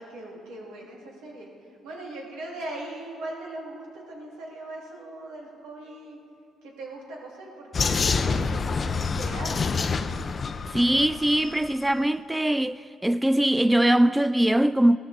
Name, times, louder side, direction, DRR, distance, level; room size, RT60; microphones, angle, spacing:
voice 1, 0.0-1.5 1.8-6.2 6.6-9.8, right 2 dB, 90° right, 2.6 m, -40 dB
Vehicle, 7.7-11.7, left 4 dB, 40° left, 0.6 m, -27 dB
voice 2, 10.7-15.0, right 1 dB, 10° right, 0.3 m, -22 dB
16.5 x 13.5 x 4.1 m
cardioid pair, 85°, 0 cm